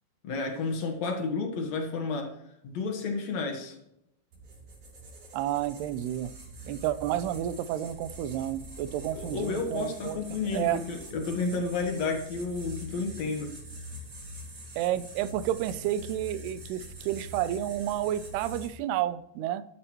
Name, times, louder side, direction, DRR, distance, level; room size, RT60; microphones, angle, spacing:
voice 1, 0.2-2.3 2.6-3.8 9.1-13.5, left 4 dB, 55° left, 3 dB, 2.1 m, -31 dB
sound 1, 4.3-18.7, equal, 45° right, 4.5 m, -44 dB
voice 2, 5.3-6.3 6.7-10.8 14.8-19.7, right 12 dB, 80° right, 14 dB, 2.6 m, -31 dB
12.5 x 10.5 x 3.1 m, 0.78 s
omnidirectional pair, 4.9 m